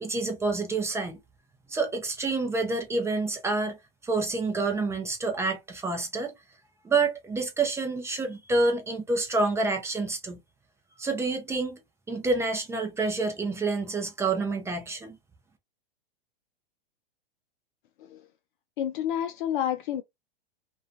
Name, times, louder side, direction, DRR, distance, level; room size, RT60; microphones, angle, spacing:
voice 1, 0.0-1.2 1.7-3.8 4.0-6.3 6.8-10.4 11.0-11.8 12.1-15.2, right 3 dB, 10° right, 0.4 m, -28 dB
voice 2, 18.8-20.0, left 10 dB, 60° left, 0.4 m, -29 dB
2.3 x 2.3 x 2.6 m
hypercardioid pair, 115°, 29 cm